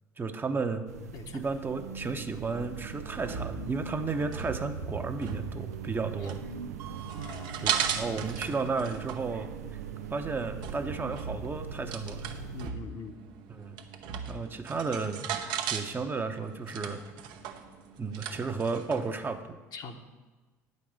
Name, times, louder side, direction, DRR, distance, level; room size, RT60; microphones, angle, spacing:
voice 1, 0.2-0.9 1.3-6.4 7.6-9.5 10.1-12.3 13.5-13.8 14.3-15.3 15.7-17.0 18.0-19.6, right 4 dB, 25° right, 7 dB, 0.9 m, -33 dB
sound 1, 0.9-12.7, right 6 dB, 85° right, 0.4 m, -41 dB
sound 2, 2.3-19.4, right 8 dB, 60° right, 0.9 m, -38 dB
voice 2, 7.0-7.6 12.5-13.1 19.7-20.0, left 4 dB, 55° left, 5 dB, 1.1 m, -43 dB
9.2 x 5.4 x 7.6 m, 1.2 s
hypercardioid pair, 65°, 8 cm